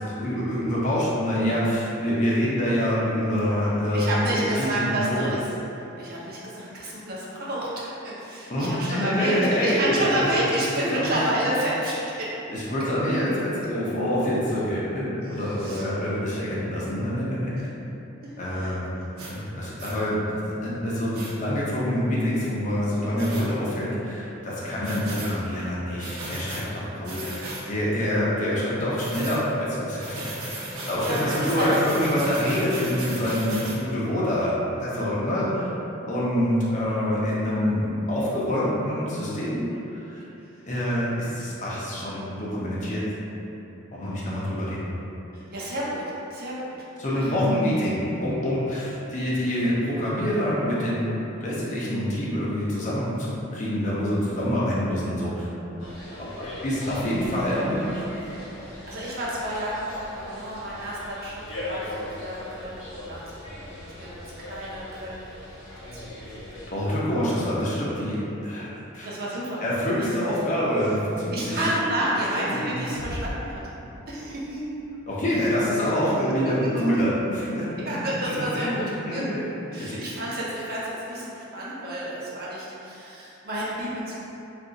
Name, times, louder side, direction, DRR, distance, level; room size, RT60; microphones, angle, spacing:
voice 1, 0.0-5.3 8.5-10.3 10.9-11.2 12.5-17.7 18.4-18.9 19.3-20.4 20.6-30.4 30.9-34.5 34.8-35.7 36.1-39.6 39.9-40.2 40.6-43.0 43.9-44.9 47.0-55.5 56.2-58.0 66.7-68.7 68.9-71.6 72.4-72.7 75.1-77.7 78.0-78.4 79.0-79.4 79.8-79.9, equal, 35° left, -7 dB, 0.5 m, -26 dB
voice 2, 3.9-5.4 6.0-12.3 15.3-15.8 17.5-17.7 18.2-18.7 31.0-32.1 45.3-46.0 46.3-46.8 47.1-47.3 58.6-59.8 60.1-62.7 63.0-63.2 63.6-65.1 65.5-66.4 66.9-67.0 69.0-69.6 70.0-70.1 71.3-73.6 74.1-74.7 76.9-77.0 77.9-79.2 79.7-84.1, right 1 dB, 45° right, -7 dB, 0.6 m, -30 dB
sound 1, 19.2-19.3 19.8-20.0 21.1-21.3 23.2-23.5 24.8-25.3 26.0-26.6 27.0-27.6 29.0-29.4 30.0-33.8, right 1 dB, 85° right, 0.6 m, -35 dB
sound 2, 55.8-66.7, left 1 dB, 60° left, 0.8 m, -39 dB
sound 3, 73.0-76.9, equal, 90° left, 0.5 m, -40 dB
2.5 x 2.3 x 3.8 m, 2.9 s
head